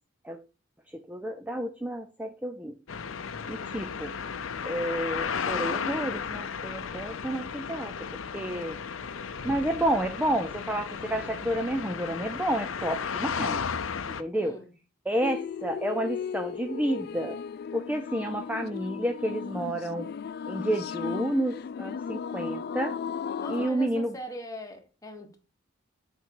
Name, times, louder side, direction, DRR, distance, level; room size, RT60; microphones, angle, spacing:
voice 1, 1.1-2.7 3.5-4.1 4.6-7.9 8.3-8.8 9.4-13.6 14.1-14.5 15.1-17.4 17.7-20.1 20.5-23.0 23.5-24.2, right 1 dB, 10° right, 0.5 m, -30 dB
sound 1, 2.9-14.2, left 6 dB, 90° left, 0.7 m, -34 dB
voice 2, 14.3-14.7 23.4-25.4, left 1 dB, 15° left, 1.4 m, -41 dB
sound 2, 15.2-23.7, left 7 dB, 50° left, 0.3 m, -36 dB
7.5 x 4.6 x 4.7 m
head